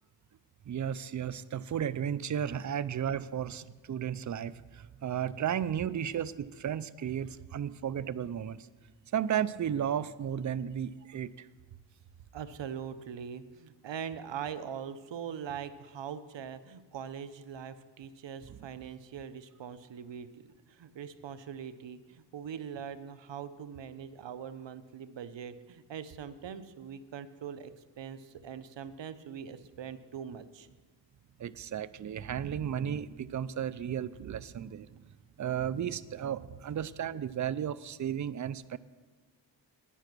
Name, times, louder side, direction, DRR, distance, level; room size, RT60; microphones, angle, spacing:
voice 1, 0.7-8.7 9.1-11.5 18.5-18.6 31.4-35.0 35.4-38.8, right 9 dB, 45° right, 17 dB, 0.4 m, -34 dB
voice 2, 12.3-20.3 20.7-30.7, right 8 dB, 75° right, 13 dB, 0.7 m, -42 dB
10.0 x 9.3 x 6.1 m, 1.3 s
wide cardioid pair, 80°, 45 cm